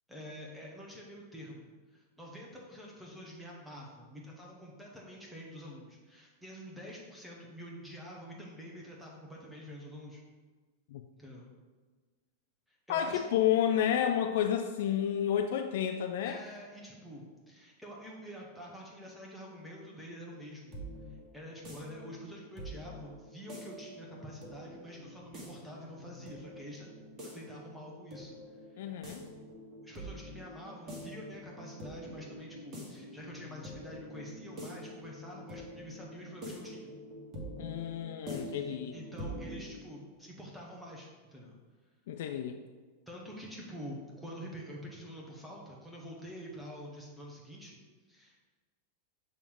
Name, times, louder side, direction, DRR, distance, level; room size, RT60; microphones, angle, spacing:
voice 1, 0.1-10.2 11.2-11.4 12.7-13.3 16.2-20.8 21.3-26.9 27.3-28.4 28.7-28.9 29.8-36.9 38.3-41.5 43.1-47.8 48.1-48.5, equal, ahead, -4 dB, 1.1 m, -47 dB
voice 2, 12.9-16.4 28.8-29.3 37.6-38.9 42.1-42.6, left 9 dB, 55° left, 6 dB, 0.3 m, -30 dB
sound 1, 20.3-39.7, equal, 30° right, 1.5 m, -46 dB
7.1 x 3.4 x 4.5 m, 1.4 s
figure-of-eight pair, 90°, 0 cm